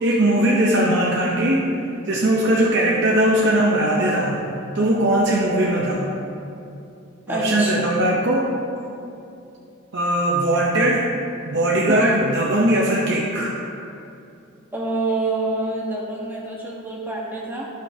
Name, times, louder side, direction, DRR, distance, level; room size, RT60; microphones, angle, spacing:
voice 1, 0.0-1.7 2.1-4.4 4.7-6.1 7.3-8.5 9.9-11.1 11.5-13.5, right 1 dB, 55° right, -3 dB, 0.7 m, -19 dB
voice 2, 7.3-7.7 11.9-12.2 14.7-17.7, right 2 dB, 10° right, -4 dB, 1.1 m, -26 dB
15.0 x 5.3 x 2.8 m, 2.7 s
head